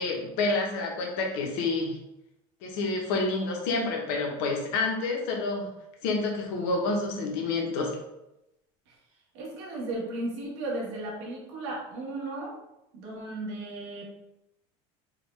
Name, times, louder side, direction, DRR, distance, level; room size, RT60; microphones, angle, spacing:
voice 1, 0.0-2.0 2.6-5.7 6.0-8.0, left 3 dB, 55° left, 0 dB, 0.7 m, -28 dB
voice 2, 9.3-12.6 12.9-14.0, right 2 dB, 75° right, -2 dB, 1.2 m, -35 dB
3.6 x 2.2 x 3.1 m, 0.89 s
cardioid pair, 175°, 14 cm